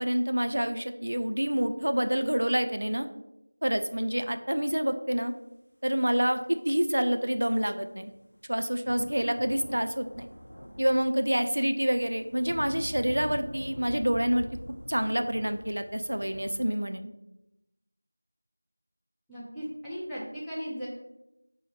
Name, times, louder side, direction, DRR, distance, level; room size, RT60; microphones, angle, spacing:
voice 1, 0.0-3.1 3.6-5.3 5.8-8.1 8.5-10.3 10.8-14.5 14.9-17.1, equal, 70° right, 8 dB, 0.3 m, -27 dB
sound 1, 7.7-16.7, equal, 70° left, 0.5 m, -44 dB
voice 2, 19.3-20.9, equal, ahead, -13 dB, 0.3 m, -37 dB
5.0 x 2.0 x 2.9 m, 0.91 s
figure-of-eight pair, 175°, 0 cm